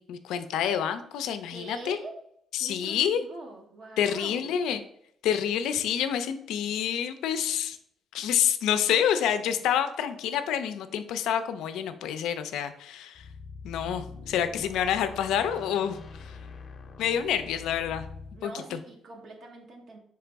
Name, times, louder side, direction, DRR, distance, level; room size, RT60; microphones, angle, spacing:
voice 1, 0.0-2.0 2.5-3.2 4.0-4.8 5.2-7.8 8.1-13.2 13.6-16.4 17.0-18.1 18.4-18.8, left 9 dB, 90° left, 10 dB, 0.4 m, -28 dB
voice 2, 1.5-2.1 2.6-4.6 18.3-20.0, right 2 dB, 65° right, 1 dB, 0.9 m, -43 dB
sound 1, 13.1-18.4, left 4 dB, 50° left, 0.6 m, -44 dB
3.9 x 3.2 x 3.4 m, 0.69 s
cardioid pair, 90°, 0 cm